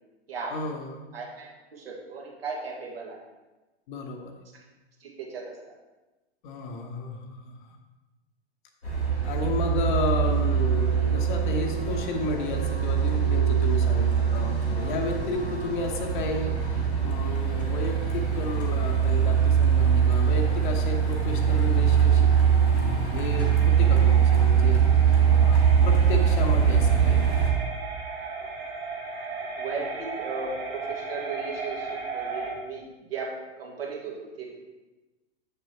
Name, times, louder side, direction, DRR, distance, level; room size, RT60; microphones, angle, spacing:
voice 1, 0.5-1.0 3.9-4.3 6.4-7.8 9.2-22.3 22.7-23.5 23.8-24.8 25.1-27.2, left 3 dB, 50° left, 3 dB, 1.1 m, -33 dB
voice 2, 1.1-3.2 5.0-5.5 29.6-33.3 33.6-34.6, right 4 dB, 65° right, -2 dB, 1.9 m, -36 dB
Truck, 8.8-27.5, right 7 dB, 90° left, 1.8 m, -22 dB
sound 1, 17.9-32.5, right 4 dB, 45° right, 2.2 m, -38 dB
7.8 x 6.8 x 2.9 m, 1.1 s
figure-of-eight pair, 100°, 32 cm